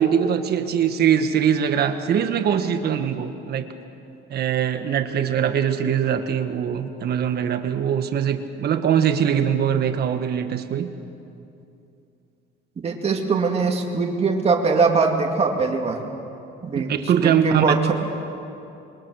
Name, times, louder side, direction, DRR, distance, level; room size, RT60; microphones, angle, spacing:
voice 1, 0.0-3.7 4.3-10.9 16.7-17.7, right 8 dB, 50° right, 7 dB, 1.5 m, -22 dB
voice 2, 12.8-16.0 16.6-16.9 17.2-17.9, right 4 dB, 30° right, 2 dB, 2.4 m, -21 dB
27.5 x 23.0 x 6.3 m, 2.7 s
cardioid pair, 150°, 21 cm